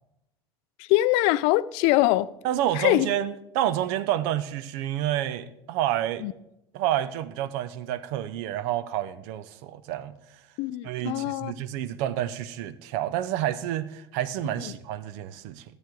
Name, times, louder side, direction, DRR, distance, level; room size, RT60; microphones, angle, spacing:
voice 1, 0.8-2.3 2.7-3.1 6.2-6.3 10.6-11.5 14.6-14.7, left 17 dB, 55° left, 0.4 m, -23 dB
voice 2, 2.4-6.2 6.7-10.1 10.8-15.6, right 12 dB, 55° right, 0.6 m, -29 dB
14.0 x 7.8 x 3.8 m
figure-of-eight pair, 70°, 13 cm